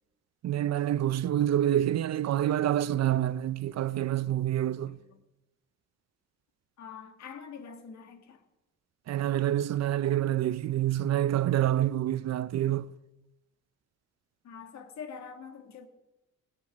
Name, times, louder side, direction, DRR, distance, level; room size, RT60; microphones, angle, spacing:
voice 1, 0.4-5.0 9.1-12.9, right 12 dB, 60° right, 0.6 m, -27 dB
voice 2, 6.8-8.4 14.4-15.9, left 6 dB, 65° left, 2.2 m, -44 dB
20.0 x 9.6 x 7.5 m
cardioid pair, 90°, 30 cm